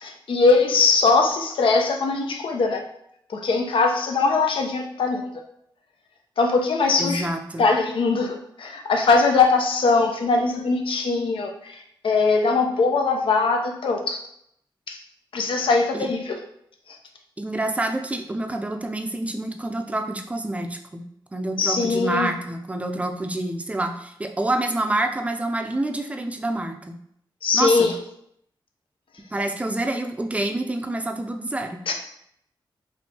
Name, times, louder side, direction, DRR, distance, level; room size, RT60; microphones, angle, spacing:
voice 1, 0.0-2.8 3.3-5.2 6.4-7.3 7.6-11.8 12.0-14.2 14.9-15.0 15.3-16.4 21.6-22.3 27.4-27.9 31.9-32.0, left 4 dB, 90° left, 3 dB, 0.6 m, -21 dB
voice 2, 7.0-7.6 15.9-16.1 17.4-21.1 21.3-27.0 27.5-27.9 29.3-31.8, right 1 dB, 15° right, 5 dB, 0.4 m, -27 dB
4.4 x 3.2 x 2.8 m, 0.73 s
wide cardioid pair, 150°, 9 cm